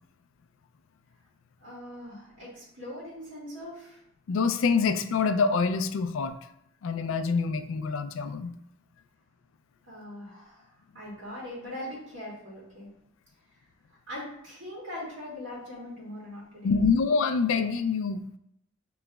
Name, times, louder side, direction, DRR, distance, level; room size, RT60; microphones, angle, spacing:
voice 1, 1.6-4.0 9.9-12.9 13.9-16.8, left 1 dB, 70° right, -6 dB, 1.5 m, -41 dB
voice 2, 4.3-6.3 6.8-8.6 16.6-18.2, left 5 dB, 75° left, 9 dB, 0.4 m, -26 dB
6.0 x 3.0 x 2.3 m, 0.76 s
head